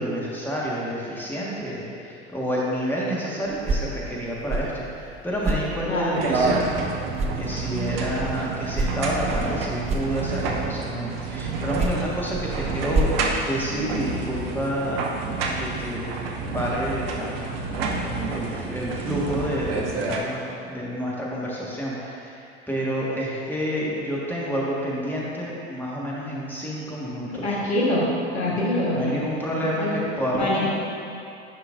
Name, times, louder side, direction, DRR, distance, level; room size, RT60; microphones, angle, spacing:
voice 1, 0.0-6.6 7.3-13.1 13.4-15.0 15.6-16.0 16.5-17.5 18.0-27.6 28.9-30.7, equal, 5° left, -6 dB, 1.6 m, -29 dB
sound 1, 3.5-6.9 7.1-10.7 11.5-14.2, right 2 dB, 20° right, 0.5 m, -30 dB
voice 2, 5.9-6.2 27.4-28.1 28.3-29.2 29.6-30.0 30.4-30.7, left 1 dB, 70° left, -5 dB, 1.5 m, -24 dB
sound 2, 6.2-20.2, right 3 dB, 60° right, 0.9 m, -29 dB
10.0 x 5.6 x 2.6 m, 2.7 s
figure-of-eight pair, 75°, 34 cm